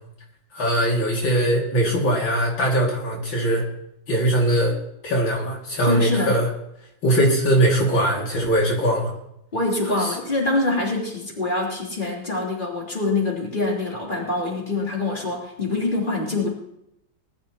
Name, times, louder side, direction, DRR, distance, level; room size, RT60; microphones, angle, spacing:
voice 1, 0.5-3.6 4.1-4.7 5.0-6.5 7.0-9.1 10.0-10.1, right 1 dB, 80° left, -2 dB, 3.2 m, -21 dB
voice 2, 5.8-6.3 9.5-16.5, left 2 dB, 25° left, -3 dB, 3.6 m, -25 dB
20.0 x 12.0 x 2.9 m, 0.80 s
omnidirectional pair, 2.1 m